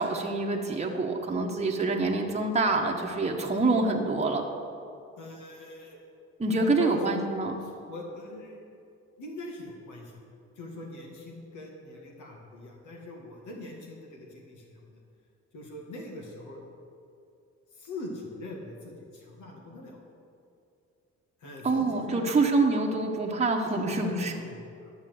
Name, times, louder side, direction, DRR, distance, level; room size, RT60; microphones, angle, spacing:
voice 1, 0.0-4.4 6.4-7.5 21.6-24.3, right 3 dB, 20° right, 0 dB, 1.2 m, -26 dB
voice 2, 5.2-6.0 6.6-7.2 7.6-8.6 9.2-10.2 10.6-15.0 15.5-16.6 17.7-20.0 21.4-22.4 23.7-24.9, left 1 dB, 75° left, -1 dB, 2.1 m, -42 dB
11.5 x 6.0 x 7.8 m, 2.5 s
cardioid pair, 90°, 30 cm